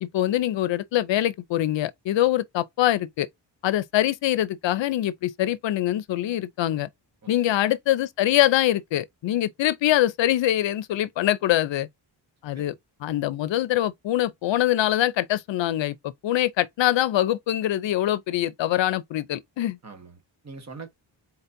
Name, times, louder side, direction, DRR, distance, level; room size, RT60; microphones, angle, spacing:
voice 1, 0.0-3.3 3.6-6.9 7.3-11.9 12.4-12.7 13.0-19.8, left 13 dB, 75° left, 0.6 m, -24 dB
voice 2, 7.2-7.6 12.5-12.7 19.8-20.9, right 4 dB, 35° right, 1.4 m, -43 dB
4.2 x 4.1 x 2.6 m
wide cardioid pair, 140°, 45 cm